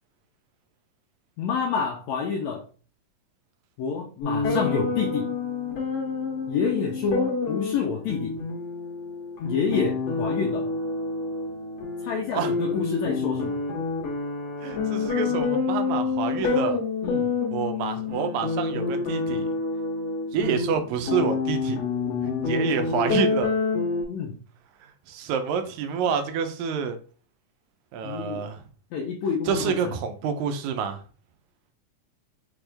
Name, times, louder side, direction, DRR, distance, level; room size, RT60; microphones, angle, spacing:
voice 1, 1.4-2.6 3.8-5.3 6.5-8.4 9.4-10.7 12.0-13.5 17.0-17.3 24.1-24.4 28.0-28.5 28.9-29.9, left 6 dB, 75° left, 1.8 m, -28 dB
sound 1, 4.2-24.0, left 4 dB, 60° left, 2.2 m, -28 dB
voice 2, 14.6-16.8 17.5-19.5 20.3-21.8 22.2-23.5 25.1-27.0 27.9-28.6 29.5-31.0, right 6 dB, 80° right, 2.0 m, -28 dB
6.0 x 2.4 x 3.3 m
omnidirectional pair, 3.6 m